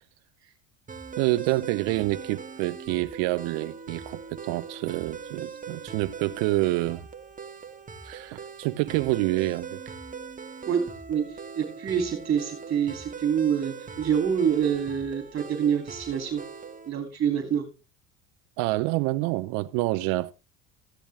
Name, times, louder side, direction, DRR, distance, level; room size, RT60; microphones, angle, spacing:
sound 1, 0.9-16.9, right 5 dB, 20° right, 1.8 m, -41 dB
voice 1, 1.2-7.1 8.0-9.8 18.6-20.3, right 19 dB, 70° right, 0.7 m, -27 dB
voice 2, 11.1-16.4 16.9-17.6, right 8 dB, 40° right, 2.9 m, -26 dB
14.5 x 10.0 x 3.4 m
supercardioid pair, 85°, 35 cm